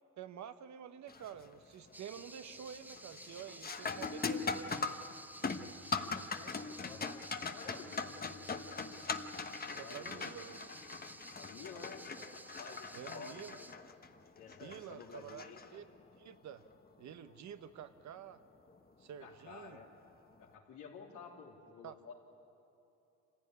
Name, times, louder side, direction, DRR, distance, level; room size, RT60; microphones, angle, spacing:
voice 1, 0.2-4.8 9.8-10.6 12.9-13.6 14.6-15.4 15.7-15.9 16.1-16.6 17.0-18.4 19.0-19.8 21.8-22.1, right 9 dB, 65° right, 10 dB, 1.2 m, -49 dB
sound 1, 1.1-1.5 1.9-2.3 2.6-16.2 18.7-18.8 19.6-19.8, left 4 dB, 30° left, 1.1 m, -41 dB
sound 2, 1.9-13.7, right 1 dB, 5° right, 0.8 m, -53 dB
voice 2, 5.7-8.3 9.7-10.5 11.3-12.0 12.3-13.7 14.4-15.6 19.2-19.9 20.4-22.1, left 5 dB, 85° left, -1 dB, 3.2 m, -52 dB
25.5 x 15.5 x 9.6 m, 2.8 s
cardioid pair, 90°, 30 cm